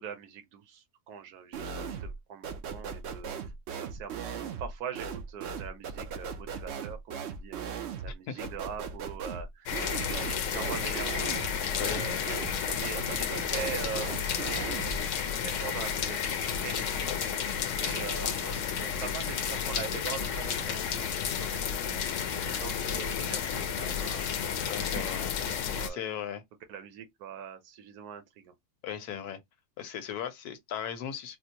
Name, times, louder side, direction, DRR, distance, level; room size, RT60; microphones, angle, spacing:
voice 1, 0.0-3.3 3.8-7.6 8.0-11.3 11.6-17.1 17.7-22.1 22.4-24.3 24.8-26.0 26.7-28.5, right 8 dB, 90° right, 1.2 m, -43 dB
sound 1, 1.5-2.2 2.4-15.0, right 6 dB, 60° right, 0.7 m, -38 dB
sound 2, 9.7-25.9, left 7 dB, 65° left, 0.9 m, -32 dB
voice 2, 11.8-12.1 24.7-25.3 25.9-26.4 28.8-29.4 29.8-31.4, left 9 dB, 80° left, 1.3 m, -37 dB
4.3 x 2.0 x 2.8 m
omnidirectional pair, 1.6 m